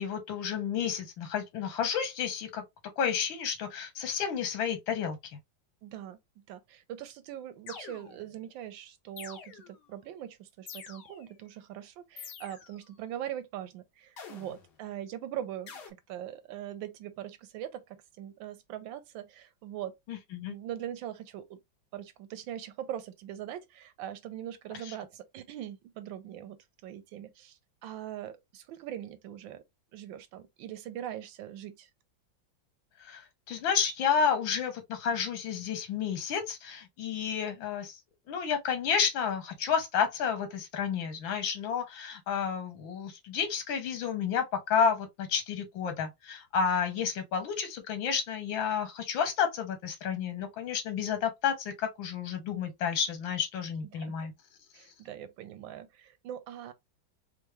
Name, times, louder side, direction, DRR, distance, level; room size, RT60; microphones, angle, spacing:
voice 1, 0.0-2.6 3.0-5.2 20.1-20.6 24.9-25.0 33.0-38.0 38.3-54.3, left 7 dB, 85° left, 1.8 m, -31 dB
voice 2, 5.8-21.6 21.9-29.6 29.9-31.9 53.9-54.1 54.7-56.7, right 11 dB, 85° right, 1.4 m, -42 dB
sound 1, 7.7-8.4 9.2-9.9 10.7-11.4 12.2-12.9 14.2-14.8 15.7-15.9, left 6 dB, 65° left, 1.5 m, -47 dB
4.5 x 2.0 x 3.0 m
omnidirectional pair, 2.1 m